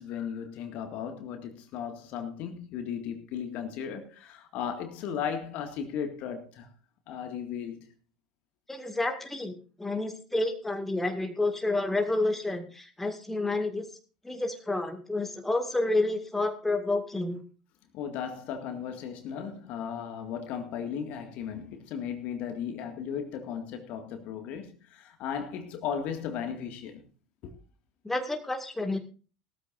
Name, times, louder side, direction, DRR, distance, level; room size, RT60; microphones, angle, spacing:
voice 1, 0.0-6.7 7.1-7.9 17.9-27.0 27.4-27.5, left 8 dB, 50° left, 2.0 m, -36 dB
voice 2, 8.7-13.9 14.2-17.4 28.0-29.0, left 2 dB, 5° left, 2.0 m, -29 dB
18.5 x 13.5 x 2.6 m
figure-of-eight pair, 75°, 3 cm